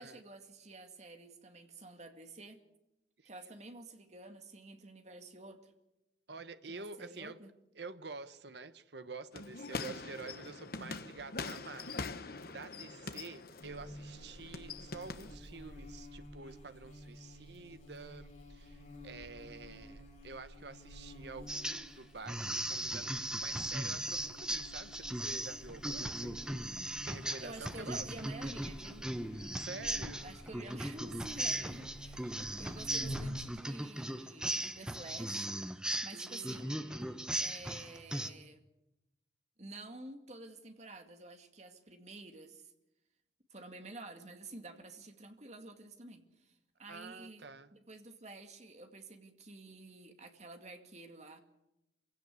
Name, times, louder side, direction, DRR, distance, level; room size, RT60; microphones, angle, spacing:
voice 1, 0.0-2.6 3.2-5.7 6.7-7.5 27.2-29.1 30.2-35.5 36.0-36.8 37.4-38.6 39.6-42.7 43.5-46.5 46.8-51.4, right 2 dB, 40° right, 2.2 m, -50 dB
voice 2, 6.3-7.4 7.7-26.3 27.0-28.1 29.4-30.3 32.2-32.7 36.1-37.3 46.9-47.7, right 4 dB, 65° right, 1.0 m, -49 dB
sound 1, 9.3-15.3, left 4 dB, 55° left, 1.2 m, -43 dB
Buzz, 13.6-33.4, equal, 40° left, 7.0 m, -49 dB
sound 2, 21.5-21.9 22.3-38.3, right 1 dB, 5° right, 0.8 m, -38 dB
25.5 x 16.5 x 8.3 m
head